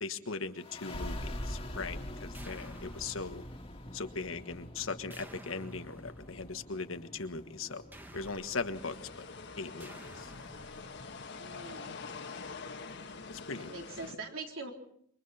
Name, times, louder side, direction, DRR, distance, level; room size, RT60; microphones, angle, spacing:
voice 1, 0.0-3.4 3.9-7.8 8.1-9.3 9.6-10.3 13.3-13.7, left 4 dB, 85° left, 9 dB, 1.4 m, -39 dB
sound 1, 0.6-11.8, left 1 dB, 25° left, 2.2 m, -45 dB
sound 2, 2.3-3.9 5.1-6.7 7.9-9.4 9.8-11.4, equal, 10° right, 1.6 m, -54 dB
sound 3, 8.7-14.1, left 4 dB, 60° left, 1.5 m, -45 dB
voice 2, 11.4-12.0 13.6-14.7, right 3 dB, 80° right, 2 dB, 3.7 m, -43 dB
27.0 x 24.0 x 4.3 m, 0.67 s
head